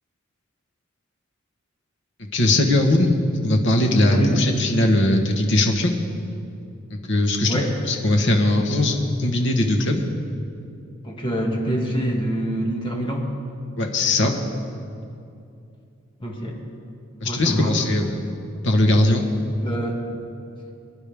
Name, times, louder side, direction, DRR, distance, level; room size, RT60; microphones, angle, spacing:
voice 1, 2.3-3.2 3.4-5.9 6.9-10.1 13.8-14.3 17.2-18.3 18.6-19.2, left 1 dB, 60° left, 3 dB, 1.4 m, -20 dB
voice 2, 11.0-13.3 16.2-16.6 17.2-17.8 19.4-20.0, equal, 25° left, -1 dB, 1.9 m, -25 dB
24.0 x 10.5 x 3.5 m, 2.5 s
head